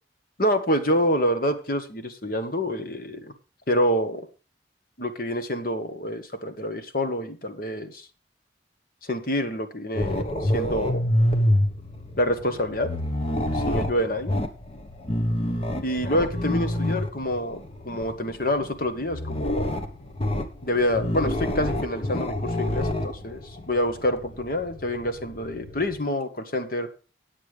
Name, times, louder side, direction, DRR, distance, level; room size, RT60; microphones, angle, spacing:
voice 1, 0.4-3.3 3.7-4.3 5.0-8.1 9.0-11.1 12.2-12.9 13.5-14.4 15.8-19.7 20.6-26.9, equal, 50° left, 8 dB, 1.5 m, -27 dB
sound 1, 10.0-26.0, left 1 dB, 35° left, 1.2 m, -28 dB
9.8 x 8.3 x 5.0 m, 0.35 s
head